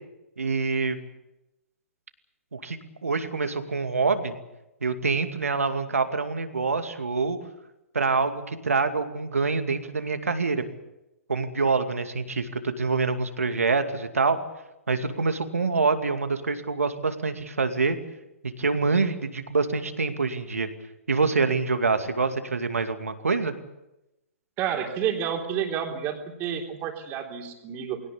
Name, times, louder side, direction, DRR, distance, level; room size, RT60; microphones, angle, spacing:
voice 1, 0.4-1.0 2.5-4.3 4.8-7.4 7.9-10.6 11.3-14.4 14.9-18.0 18.6-20.7 21.1-23.5, right 4 dB, 75° right, 8 dB, 2.4 m, -26 dB
voice 2, 24.6-28.0, right 8 dB, 25° right, 4 dB, 3.6 m, -30 dB
21.5 x 18.0 x 8.5 m, 0.92 s
figure-of-eight pair, 120°, 8 cm